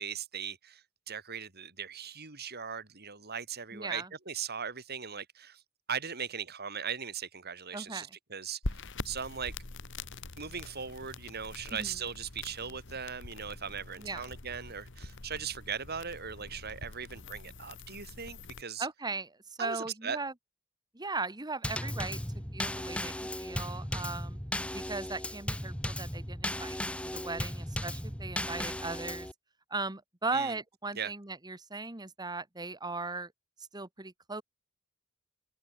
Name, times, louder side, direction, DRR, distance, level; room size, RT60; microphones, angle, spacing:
voice 1, 0.0-5.6 5.9-8.6 9.0-9.5 10.4-18.9 19.6-20.2 30.3-30.5 31.0-31.1, right 7 dB, 50° right, 5.2 m, -39 dB
voice 2, 3.7-4.1 7.7-8.2 11.7-12.0 14.0-14.2 18.8-20.3 20.9-22.2 22.5-24.4 24.7-29.3 29.7-33.3 33.7-34.4, right 3 dB, 20° right, 1.7 m, -38 dB
sound 1, 8.6-18.6, left 2 dB, 65° left, 1.8 m, -44 dB
Drum kit / Snare drum / Bass drum, 21.6-29.3, left 1 dB, 5° left, 2.2 m, -36 dB
open air
head